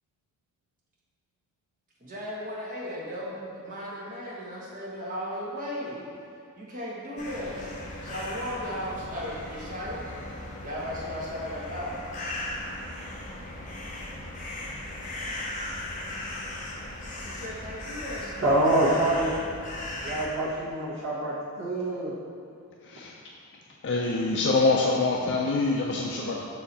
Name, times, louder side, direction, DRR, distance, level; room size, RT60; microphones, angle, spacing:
voice 1, 2.0-6.1 6.6-10.0 10.6-12.0 17.1-18.5, equal, 35° right, -6 dB, 1.3 m, -36 dB
sound 1, 7.2-20.3, left 1 dB, 35° left, 0.8 m, -37 dB
voice 2, 18.4-19.3 20.0-22.1, right 1 dB, 60° right, -8 dB, 1.2 m, -25 dB
voice 3, 22.8-23.1 23.8-26.5, left 3 dB, 55° left, -2 dB, 0.4 m, -25 dB
6.1 x 4.3 x 4.1 m, 2.4 s
head